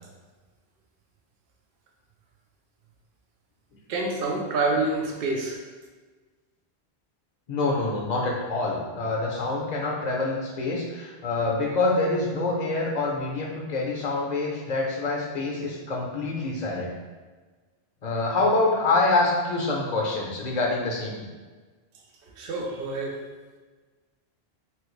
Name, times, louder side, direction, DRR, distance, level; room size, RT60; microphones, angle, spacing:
voice 1, 3.9-5.6 22.4-23.2, right 3 dB, 65° right, 0 dB, 0.8 m, -27 dB
voice 2, 7.5-16.9 18.0-21.3, left 2 dB, 50° left, -1 dB, 0.7 m, -26 dB
3.1 x 2.8 x 3.1 m, 1.3 s
omnidirectional pair, 1.1 m